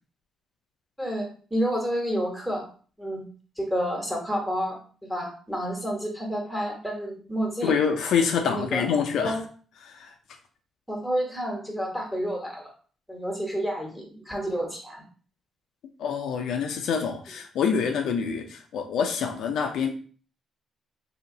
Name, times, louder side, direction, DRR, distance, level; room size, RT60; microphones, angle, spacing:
voice 1, 1.0-2.7 3.0-3.2 3.6-7.8 8.4-8.9 9.2-9.4 10.9-12.7 13.1-15.0, equal, ahead, 0 dB, 1.4 m, -30 dB
voice 2, 7.6-9.4 9.9-10.1 16.0-19.9, left 6 dB, 75° left, 4 dB, 0.5 m, -26 dB
2.8 x 2.6 x 3.9 m, 0.41 s
cardioid pair, 75°, 0 cm